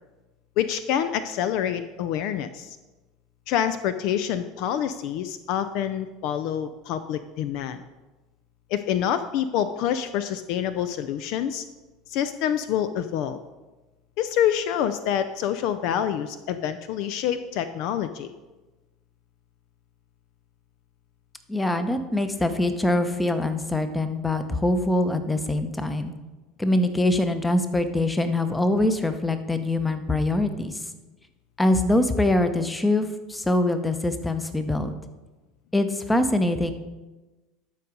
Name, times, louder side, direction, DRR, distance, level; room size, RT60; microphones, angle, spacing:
voice 1, 0.6-2.8 3.5-7.8 8.7-11.6 12.1-13.4 14.2-18.3, left 9 dB, 55° left, 12 dB, 0.4 m, -27 dB
voice 2, 21.5-26.1 26.6-30.8 31.6-35.0 35.7-36.7, left 1 dB, 10° left, 9 dB, 0.8 m, -23 dB
12.0 x 4.7 x 5.2 m, 1.2 s
figure-of-eight pair, 70°, 0 cm